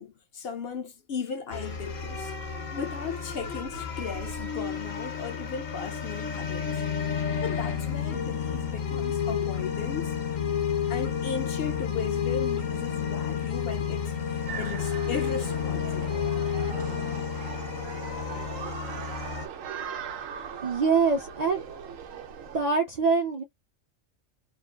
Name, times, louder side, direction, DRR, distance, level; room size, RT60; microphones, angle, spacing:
voice 1, 0.0-2.3 2.7-6.7 7.4-10.1 10.9-16.3, left 6 dB, 60° left, 0.7 m, -36 dB
sound 1, 1.5-19.5, left 7 dB, 90° left, 1.4 m, -31 dB
sound 2, 14.5-22.7, right 7 dB, 85° right, 1.1 m, -39 dB
voice 2, 20.6-21.6 22.5-23.4, right 5 dB, 50° right, 0.5 m, -24 dB
3.3 x 2.4 x 2.2 m
omnidirectional pair, 1.3 m